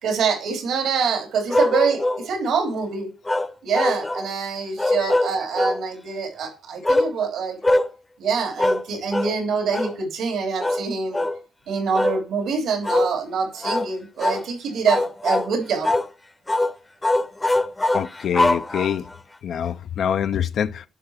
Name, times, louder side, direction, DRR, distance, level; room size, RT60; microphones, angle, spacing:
voice 1, 0.0-3.1 3.6-7.6 8.2-11.2 11.7-15.9, right 5 dB, 85° right, 3.1 m, -25 dB
sound 1, 1.5-2.3 3.3-4.3 4.8-5.8 6.8-7.1 7.6-7.9 8.6-8.8 9.1-9.4 9.7-10.0 10.6-10.8 11.1-11.4 11.9-12.2 12.8-13.1 13.6-13.9 14.2-14.5 14.9-15.5 15.8-16.1 16.5-16.7 17.0-19.1, left 1 dB, 15° left, 0.7 m, -22 dB
voice 2, 17.9-19.0 19.4-20.9, left 8 dB, 65° left, 0.4 m, -25 dB
11.0 x 5.6 x 5.6 m
cardioid pair, 110°, 0 cm